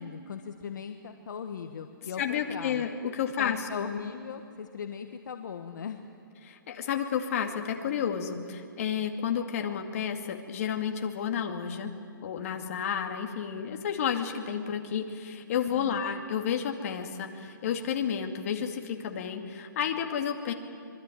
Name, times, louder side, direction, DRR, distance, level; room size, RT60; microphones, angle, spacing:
voice 1, 0.0-2.8 3.4-6.0 15.7-16.1, left 7 dB, 60° left, 6 dB, 1.5 m, -39 dB
voice 2, 2.2-3.9 6.4-12.0 12.2-20.5, left 8 dB, 40° left, 4 dB, 2.4 m, -31 dB
25.5 x 22.5 x 9.3 m, 2.6 s
hypercardioid pair, 165°, 11 cm